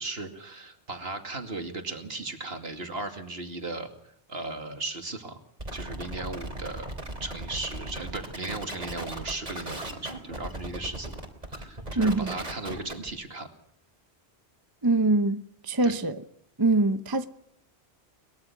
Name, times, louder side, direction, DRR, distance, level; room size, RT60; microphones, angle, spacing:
voice 1, 0.0-3.9 4.3-5.4 5.7-6.9 7.2-11.2 11.5-13.5 15.8-15.9, right 2 dB, 65° right, 2.7 m, -36 dB
sound 1, 5.6-13.1, right 1 dB, 40° right, 3.6 m, -37 dB
voice 2, 12.0-12.4 14.8-16.2 16.6-17.3, right 2 dB, 25° right, 0.8 m, -24 dB
23.0 x 21.5 x 6.0 m
omnidirectional pair, 1.1 m